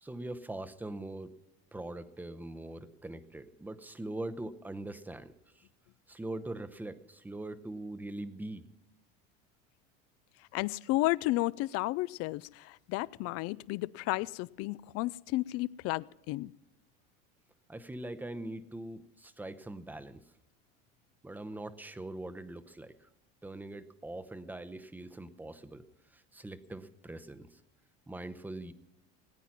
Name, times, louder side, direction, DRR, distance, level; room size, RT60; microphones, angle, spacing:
voice 1, 0.0-1.4 1.7-5.7 6.1-8.7 17.7-20.2 21.2-23.1 23.4-25.8 26.1-27.6 28.1-28.7, right 2 dB, 5° right, 12 dB, 0.7 m, -42 dB
voice 2, 10.5-16.5, left 19 dB, 55° left, 22 dB, 0.4 m, -32 dB
19.0 x 9.1 x 5.9 m, 0.98 s
supercardioid pair, 120°, 30 cm